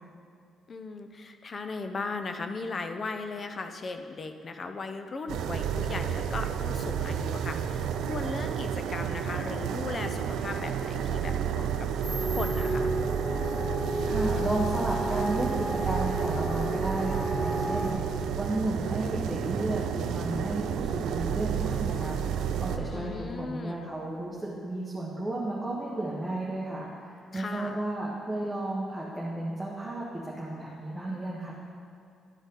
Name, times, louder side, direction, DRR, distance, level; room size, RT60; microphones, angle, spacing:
voice 1, 0.7-11.9 12.3-12.9 22.9-23.9 27.3-27.8, left 3 dB, 40° left, 7 dB, 0.6 m, -37 dB
sound 1, 5.3-22.8, right 8 dB, 85° right, 0.4 m, -31 dB
sound 2, 12.0-17.9, equal, 20° left, 1.9 m, -33 dB
voice 2, 14.0-31.5, right 1 dB, 5° right, -6 dB, 1.2 m, -33 dB
11.5 x 5.2 x 3.8 m, 2.5 s
cardioid pair, 90°, 0 cm